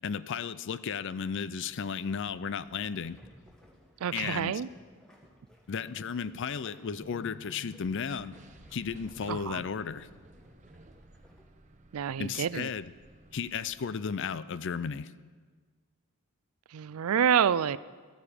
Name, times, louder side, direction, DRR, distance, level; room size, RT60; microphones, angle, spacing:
voice 1, 0.0-3.2 4.1-4.6 5.7-8.3 8.7-10.1 12.2-12.9 13.3-15.1, left 6 dB, 55° left, 15 dB, 0.5 m, -34 dB
sound 1, 1.1-11.4, equal, 5° left, 2.0 m, -59 dB
voice 2, 4.0-4.7 9.3-9.6 11.9-12.7 16.7-17.8, right 8 dB, 80° right, 18 dB, 0.4 m, -28 dB
sound 2, 6.9-13.2, left 5 dB, 90° left, 3.8 m, -58 dB
sound 3, 7.8-14.2, right 2 dB, 35° right, 0.8 m, -55 dB
14.0 x 13.0 x 5.0 m, 1.5 s
head